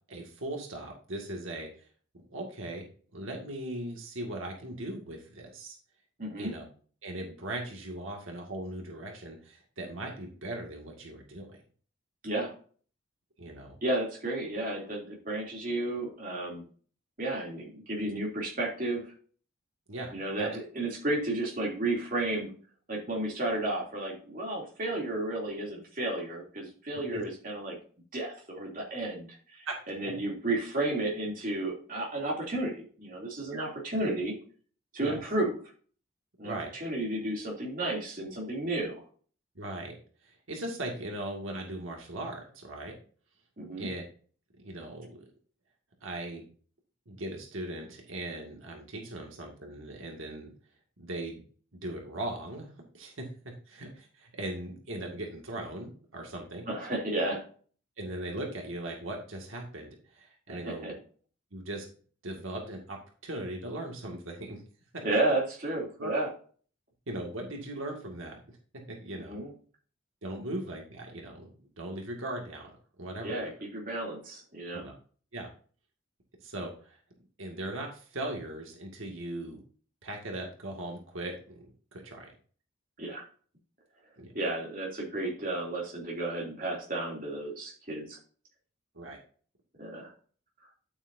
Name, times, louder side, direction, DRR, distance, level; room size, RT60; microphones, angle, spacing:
voice 1, 0.1-1.9 2.3-2.9 3.1-5.8 6.4-6.6 7.0-11.6 13.4-13.8 19.9-20.5 27.1-27.2 29.7-29.8 30.0-30.1 33.5-33.6 35.0-35.2 36.4-36.7 39.6-40.0 40.2-43.0 43.8-44.0 44.6-45.2 46.0-46.4 47.1-50.5 51.0-51.4 51.8-53.3 53.7-56.7 58.0-60.9 61.5-61.9 62.2-63.0 63.2-64.6 64.9-65.0 66.0-66.1 67.1-68.4 68.9-69.4 70.2-71.5 71.8-72.7 73.0-73.4 74.7-74.9 75.3-75.5 76.4-77.0 77.4-79.6 80.0-82.3 84.2-84.3 88.9-89.2, right 1 dB, 80° right, 1 dB, 2.1 m, -39 dB
voice 2, 6.2-6.5 12.2-12.5 13.8-16.6 17.2-19.1 20.1-22.5 22.9-27.8 28.1-34.4 34.9-35.6 36.4-39.0 43.6-43.9 56.7-57.4 60.5-60.9 65.0-66.3 69.1-69.5 73.2-74.9 83.0-83.2 84.3-88.2 89.8-90.1, right 2 dB, 40° right, -2 dB, 2.9 m, -32 dB
9.5 x 8.6 x 2.7 m, 0.42 s
head